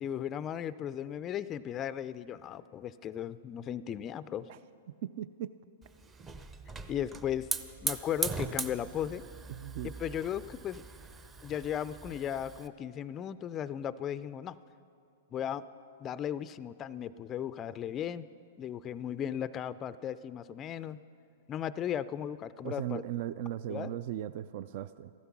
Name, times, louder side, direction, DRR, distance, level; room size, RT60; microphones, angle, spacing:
voice 1, 0.0-4.5 6.9-7.5 7.8-9.2 9.8-10.8 11.4-14.5 15.3-15.6 16.0-18.3 18.6-21.0 21.5-23.0 23.7-24.0, left 9 dB, 25° left, 15 dB, 0.3 m, -36 dB
voice 2, 5.0-5.5 9.5-9.9 22.6-25.1, right 11 dB, 55° right, 15 dB, 0.4 m, -37 dB
Hiss / Fire, 5.8-12.7, right 4 dB, 20° right, 0.7 m, -40 dB
15.0 x 12.5 x 6.0 m, 2.4 s
hypercardioid pair, 130°, 0 cm